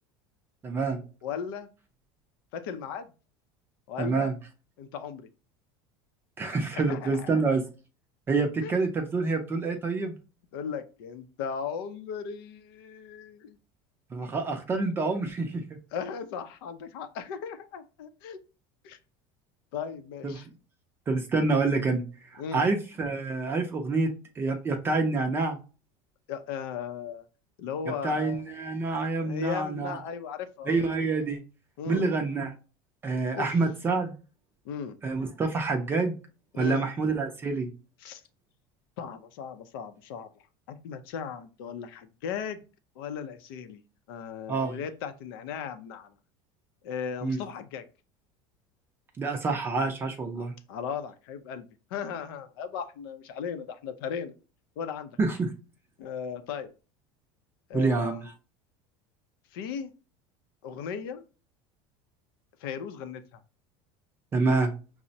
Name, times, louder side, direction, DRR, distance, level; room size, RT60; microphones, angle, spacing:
voice 1, 0.6-1.0 4.0-4.3 6.4-7.6 8.3-10.1 14.1-15.6 20.2-20.4 21.1-22.0 22.3-24.1 24.4-25.6 28.0-30.0 30.7-31.4 31.9-32.5 33.0-34.2 35.0-36.2 36.6-37.7 44.5-44.8 47.2-47.4 49.2-50.5 55.2-55.5 57.7-58.3 64.3-64.7, right 3 dB, 20° right, 3 dB, 0.4 m, -27 dB
voice 2, 1.2-1.7 2.5-3.1 3.9-4.3 4.8-5.3 6.8-7.4 8.6-8.8 10.5-13.6 15.9-18.4 18.8-19.0 19.7-20.5 22.4-22.7 26.3-27.2 27.6-28.4 29.2-30.7 31.8-32.1 33.3-33.6 34.6-35.0 36.5-36.9 38.0-38.2 39.0-40.3 40.7-42.6 43.0-43.8 44.1-46.1 46.8-47.8 50.4-54.3 54.8-55.2 56.0-56.7 57.7-58.3 59.5-59.9 60.6-61.2 62.6-63.2, left 7 dB, 90° left, 10 dB, 0.5 m, -37 dB
5.9 x 2.1 x 2.7 m, 0.34 s
cardioid pair, 160°, 12 cm